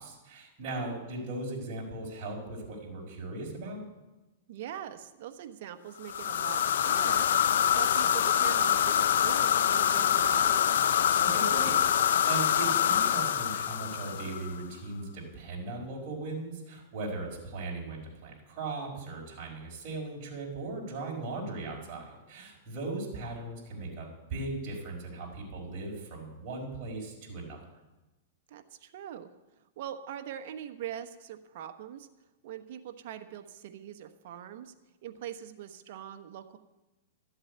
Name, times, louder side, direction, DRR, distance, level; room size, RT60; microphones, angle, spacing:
voice 1, 0.0-3.8 11.2-27.6, right 2 dB, 40° right, -3 dB, 4.8 m, -38 dB
voice 2, 0.6-1.0 4.5-10.8 28.5-29.3 29.8-32.1 32.4-34.7 35.0-36.6, right 10 dB, 60° right, 8 dB, 1.1 m, -42 dB
sound 1, 6.0-14.6, left 9 dB, 75° left, 0.6 m, -25 dB
13.0 x 8.0 x 8.1 m, 1.1 s
hypercardioid pair, 140°, 0 cm